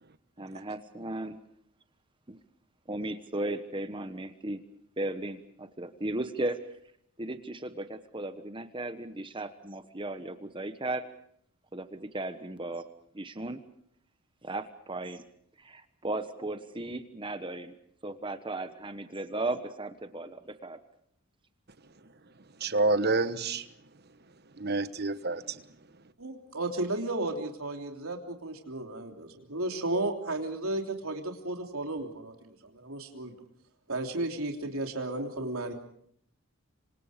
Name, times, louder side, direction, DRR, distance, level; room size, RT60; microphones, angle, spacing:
voice 1, 0.4-1.4 2.3-2.4 2.9-4.6 5.0-6.7 7.2-11.0 11.7-12.9 13.2-13.6 14.4-15.2 15.6-17.7 18.0-20.8, right 2 dB, 25° right, 1.2 m, -36 dB
voice 2, 22.6-23.7 24.6-25.6, right 3 dB, 45° right, 1.2 m, -28 dB
voice 3, 26.2-33.3 33.9-35.7, right 2 dB, 75° right, 3.2 m, -34 dB
27.0 x 25.5 x 5.2 m
head